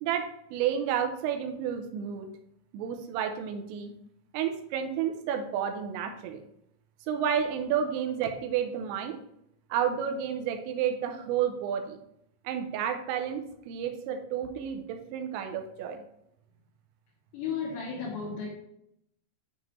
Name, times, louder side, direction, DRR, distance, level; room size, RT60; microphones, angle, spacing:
voice 1, 0.0-2.3 2.7-3.9 4.3-6.4 7.1-9.2 9.7-12.0 12.4-16.0, right 8 dB, 85° right, 5 dB, 3.3 m, -31 dB
voice 2, 17.3-18.5, left 6 dB, 70° left, -7 dB, 3.3 m, -34 dB
9.0 x 3.7 x 3.1 m, 0.76 s
omnidirectional pair, 5.9 m